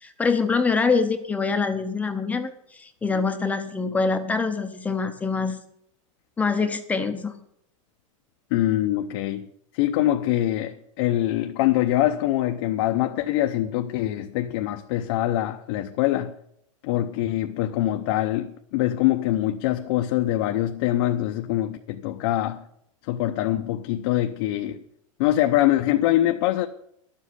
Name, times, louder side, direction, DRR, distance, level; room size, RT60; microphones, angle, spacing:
voice 1, 0.0-5.6 6.4-7.3, left 4 dB, 10° left, 0.7 m, -25 dB
voice 2, 8.5-9.5 9.7-16.3 16.8-22.6 23.1-24.8 25.2-26.7, left 14 dB, 45° left, 0.7 m, -24 dB
11.5 x 7.6 x 8.1 m
supercardioid pair, 160°, 17 cm